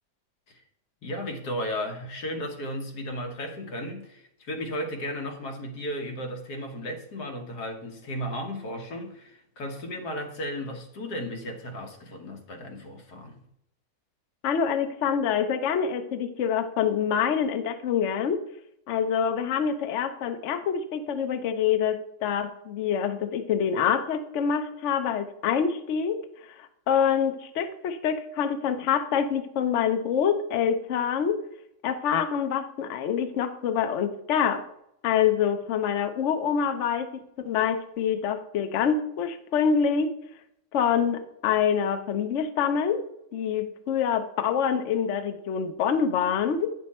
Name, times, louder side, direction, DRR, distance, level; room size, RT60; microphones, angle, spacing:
voice 1, 1.0-13.4, equal, 90° left, 3 dB, 1.8 m, -35 dB
voice 2, 14.4-18.4 18.9-26.2 26.6-31.4 31.8-34.6 35.0-37.1 37.5-40.1 40.7-43.1 43.3-46.7, left 7 dB, 60° left, 8 dB, 0.9 m, -26 dB
9.5 x 6.2 x 4.2 m, 0.78 s
omnidirectional pair, 1.6 m